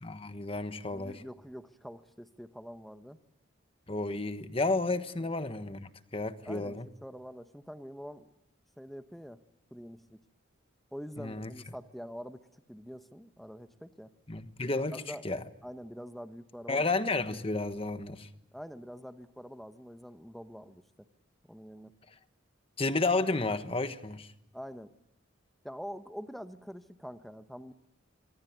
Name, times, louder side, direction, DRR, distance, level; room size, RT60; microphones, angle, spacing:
voice 1, 0.0-1.2 3.9-6.9 11.2-11.5 14.3-15.4 16.7-18.3 22.8-24.3, left 3 dB, 30° left, 10 dB, 1.3 m, -32 dB
voice 2, 0.9-3.2 5.2-5.3 6.4-8.3 8.8-9.4 9.7-10.2 10.9-14.1 14.9-15.2 15.6-16.8 18.5-21.1 21.5-21.9 24.5-24.9 25.6-27.7, equal, ahead, 10 dB, 1.0 m, -45 dB
26.5 x 23.0 x 9.3 m, 0.82 s
head